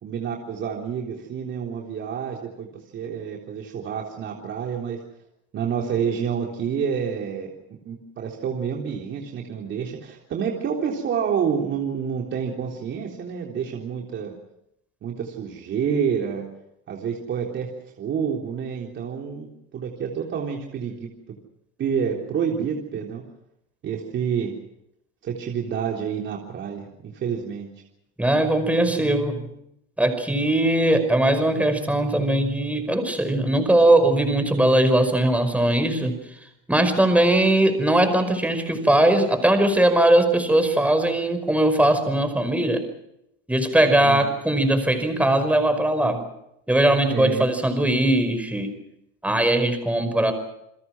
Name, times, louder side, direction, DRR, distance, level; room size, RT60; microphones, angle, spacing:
voice 1, 0.0-5.0 5.5-14.3 15.0-16.5 16.9-17.7 18.0-21.1 21.8-23.2 23.8-24.6 25.2-27.7 44.0-44.3 47.1-47.5 50.0-50.3, right 7 dB, 40° right, 1 dB, 3.7 m, -28 dB
voice 2, 28.2-29.4 30.0-36.2 36.7-42.8 43.5-46.2 46.7-48.7 49.2-50.3, right 1 dB, 5° right, 8 dB, 5.3 m, -20 dB
29.0 x 21.0 x 6.3 m, 0.79 s
supercardioid pair, 120°, 29 cm